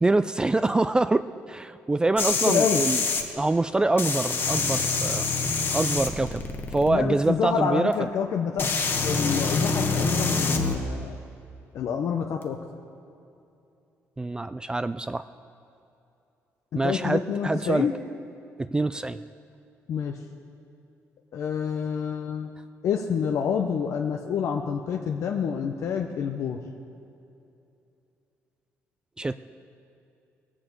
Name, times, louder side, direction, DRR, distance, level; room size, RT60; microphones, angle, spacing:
voice 1, 0.0-3.0 3.4-5.3 5.7-6.4 6.7-8.1 14.2-15.2 16.7-17.9 18.6-19.2 29.2-29.4, right 2 dB, 15° right, 12 dB, 0.4 m, -25 dB
sound 1, 2.2-3.2 4.0-6.9 7.9-8.0 8.6-10.7 12.4-12.5, left 4 dB, 40° left, 1.5 m, -26 dB
voice 2, 2.4-2.8 6.9-8.7 9.0-11.2 11.7-12.6 16.7-17.9 19.9-20.2 21.3-22.5 22.8-26.6, left 7 dB, 65° left, 3 dB, 0.9 m, -27 dB
19.5 x 7.7 x 8.1 m, 2.7 s
cardioid pair, 95°, 5 cm